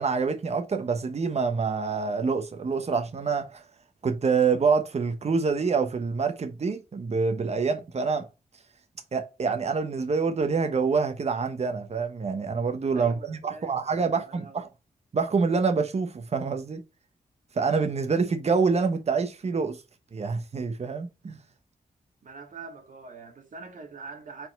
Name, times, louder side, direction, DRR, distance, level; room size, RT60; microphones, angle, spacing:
voice 1, 0.0-3.6 4.0-8.3 9.1-14.7 15.1-16.8 17.5-19.8 20.1-21.4, right 5 dB, 50° right, 1.0 m, -26 dB
voice 2, 12.9-14.6 22.2-24.5, right 4 dB, 65° right, 1.8 m, -44 dB
4.7 x 4.2 x 5.3 m
wide cardioid pair, 90°, 14 cm